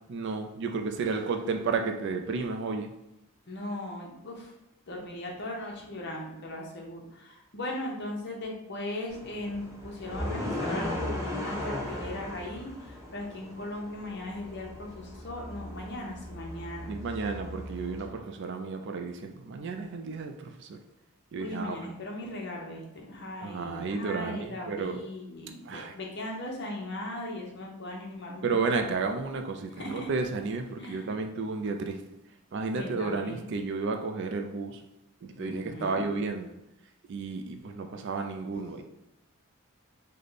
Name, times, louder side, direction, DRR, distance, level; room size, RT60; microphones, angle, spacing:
voice 1, 0.1-2.9 16.9-20.8 21.3-21.8 23.4-25.0 25.7-25.9 28.4-32.0 32.5-34.8 35.2-36.5 37.1-38.8, right 4 dB, 50° right, 5 dB, 0.3 m, -32 dB
voice 2, 3.5-4.5 4.9-16.9 21.4-28.4 28.8-28.9 29.7-30.1 30.8-31.1 32.7-33.5 35.4-36.0 38.5-38.8, left 1 dB, 50° left, -1 dB, 0.8 m, -38 dB
sound 1, 9.1-18.1, left 1 dB, 15° right, 0.6 m, -37 dB
3.3 x 2.2 x 3.9 m, 0.87 s
head